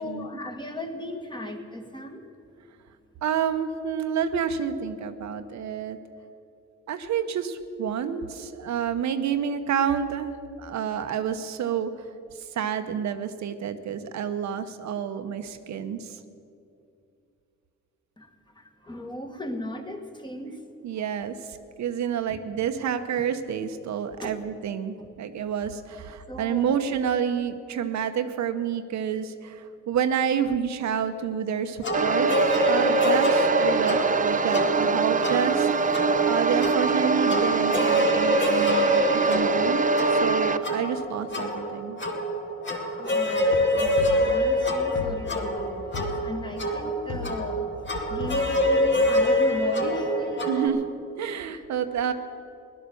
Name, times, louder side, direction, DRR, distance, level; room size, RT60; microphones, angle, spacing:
voice 1, 0.0-2.3 18.2-20.6 20.9-21.1 22.3-22.4 24.2-24.4 25.0-25.1 26.3-26.8 43.0-47.7 48.1-50.4 51.5-51.6, left 1 dB, 15° left, 4 dB, 1.7 m, -37 dB
voice 2, 3.2-6.0 6.9-16.2 20.8-32.3 32.6-39.8 40.1-42.0 50.5-50.8 51.2-52.1, right 8 dB, 65° right, 8 dB, 0.9 m, -29 dB
sound 1, 31.8-50.7, equal, 40° left, 2.2 m, -26 dB
sound 2, 31.9-40.6, right 4 dB, 25° right, 0.6 m, -24 dB
sound 3, 43.2-44.6 44.9-45.4 45.9-46.5 47.1-47.6 47.9-48.0 48.2-48.6, left 4 dB, 75° left, 1.2 m, -36 dB
16.5 x 11.5 x 7.0 m, 2.5 s
cardioid pair, 90°, 30 cm